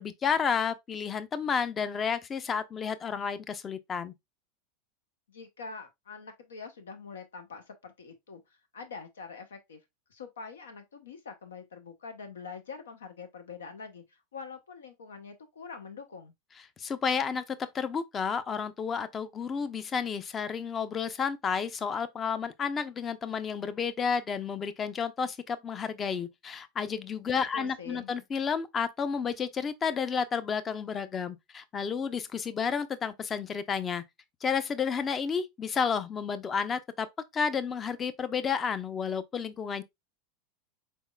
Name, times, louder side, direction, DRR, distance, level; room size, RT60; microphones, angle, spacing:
voice 1, 0.0-4.1 16.8-34.0 34.4-37.1 37.3-39.8, left 6 dB, 30° left, 0.5 m, -31 dB
voice 2, 5.3-9.8 10.1-16.3 27.5-28.1, left 5 dB, 90° left, 0.9 m, -45 dB
4.2 x 3.6 x 2.3 m
hypercardioid pair, 100°, 0 cm